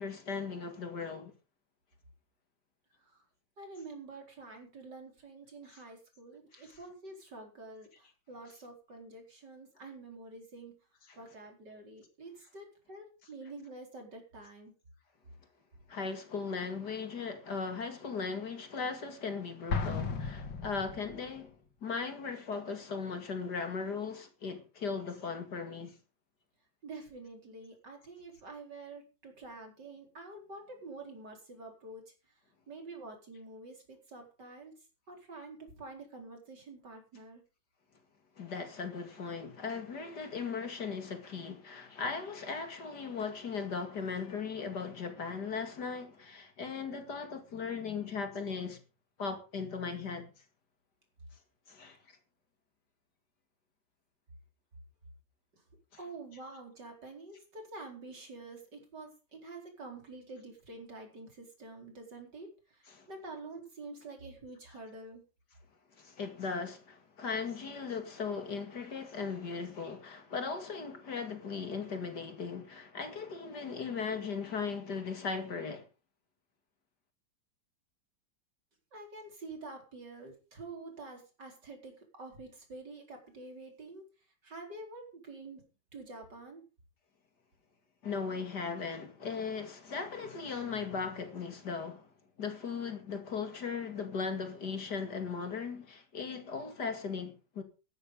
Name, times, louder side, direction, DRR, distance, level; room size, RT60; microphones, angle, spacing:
voice 1, 0.0-1.3 6.5-6.6 11.1-11.2 15.9-25.9 38.4-48.8 49.2-50.3 51.7-52.2 62.9-63.1 66.0-75.9 88.0-92.1 92.4-97.6, left 5 dB, 65° left, 2.8 m, -38 dB
voice 2, 3.6-10.8 11.2-14.7 26.8-32.1 32.7-34.7 35.1-37.4 55.5-55.6 56.0-65.2 78.9-84.0 84.4-85.6 85.9-86.6, right 3 dB, 65° right, 4.9 m, -48 dB
Explosion, 19.7-21.4, left 4 dB, 90° left, 2.6 m, -35 dB
13.5 x 12.5 x 5.2 m
omnidirectional pair, 2.0 m